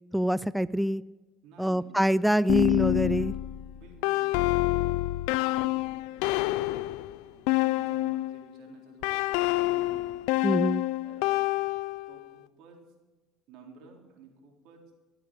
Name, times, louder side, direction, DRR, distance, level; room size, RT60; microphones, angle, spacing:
voice 1, 0.1-1.0 1.6-3.4 10.4-10.8, equal, 5° right, 18 dB, 0.4 m, -25 dB
voice 2, 1.4-1.9 3.7-4.9 5.3-5.8 6.1-6.7 7.2-10.1 11.0-11.4 12.1-12.8 13.5-14.8, right 5 dB, 70° right, 1 dB, 3.8 m, -52 dB
sound 1, 2.5-8.4 9.0-12.2, left 18 dB, 80° left, 0.4 m, -27 dB
14.0 x 8.6 x 8.8 m, 1.2 s
supercardioid pair, 85°, 0 cm